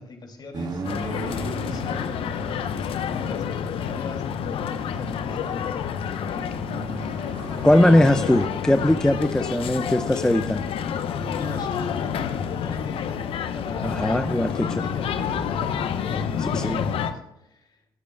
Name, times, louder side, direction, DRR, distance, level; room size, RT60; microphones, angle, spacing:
voice 1, 0.0-6.0 6.3-7.1 10.0-10.2 11.3-13.2 13.5-14.2 14.5-15.5 15.9-17.7, left 2 dB, 40° left, 3 dB, 2.6 m, -39 dB
sound 1, 0.5-4.1 5.2-8.5, right 4 dB, 40° right, 1.7 m, -38 dB
sound 2, 0.8-17.1, left 7 dB, 60° left, 0.9 m, -29 dB
voice 2, 7.6-10.6 13.8-14.5 16.5-16.8, left 1 dB, 5° left, 9 dB, 0.6 m, -20 dB
21.0 x 8.3 x 2.3 m, 0.85 s
hypercardioid pair, 55°, 11 cm